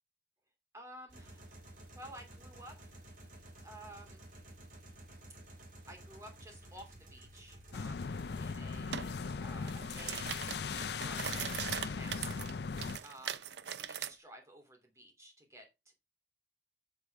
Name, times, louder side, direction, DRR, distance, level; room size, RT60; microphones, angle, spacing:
voice 1, 0.7-1.6 1.9-2.7 3.6-4.3 5.9-8.1 8.4-9.1 9.4-10.4 10.9-11.3 11.9-12.3 13.0-15.9, right 1 dB, 15° right, 3 dB, 3.0 m, -53 dB
sound 1, 1.1-9.6, right 1 dB, 45° right, 3.1 m, -53 dB
sound 2, 7.7-13.0, left 5 dB, 70° left, 0.5 m, -39 dB
sound 3, 8.9-9.1 9.5-14.1, right 9 dB, 75° right, 0.6 m, -40 dB
8.2 x 8.1 x 3.6 m, 0.24 s
head